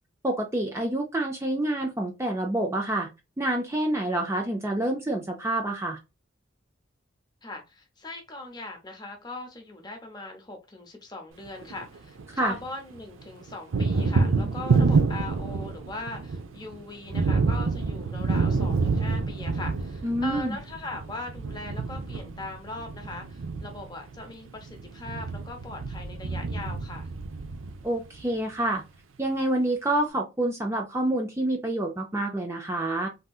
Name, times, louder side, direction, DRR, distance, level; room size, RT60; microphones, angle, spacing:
voice 1, 0.2-3.1 3.4-6.0 12.4-12.5 20.0-20.6 27.8-28.8 29.2-33.1, right 1 dB, 15° right, 0.4 m, -27 dB
voice 2, 7.4-27.1, left 2 dB, 20° left, 0.7 m, -40 dB
Thunder, 11.5-12.7 13.0-28.2, right 4 dB, 90° right, 0.5 m, -28 dB
3.6 x 2.7 x 2.3 m
head